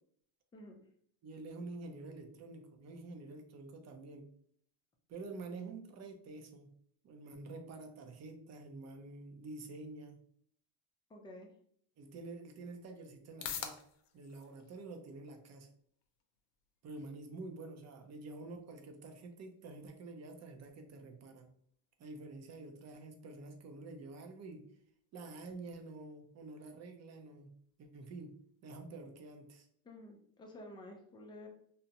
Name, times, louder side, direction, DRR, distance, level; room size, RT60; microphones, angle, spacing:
voice 1, 1.2-4.3 5.1-6.7 7.0-10.2 12.0-13.8 14.1-15.7 16.8-21.5 22.0-24.6 25.1-27.5 27.8-28.3 28.6-29.7, right 3 dB, 35° right, 5 dB, 0.6 m, -48 dB
voice 2, 11.1-11.5 29.8-31.5, left 1 dB, 10° left, 1 dB, 0.5 m, -51 dB
sound 1, 11.9-28.9, left 8 dB, 65° left, 0.6 m, -54 dB
2.5 x 2.1 x 2.8 m, 0.64 s
supercardioid pair, 100°, 48 cm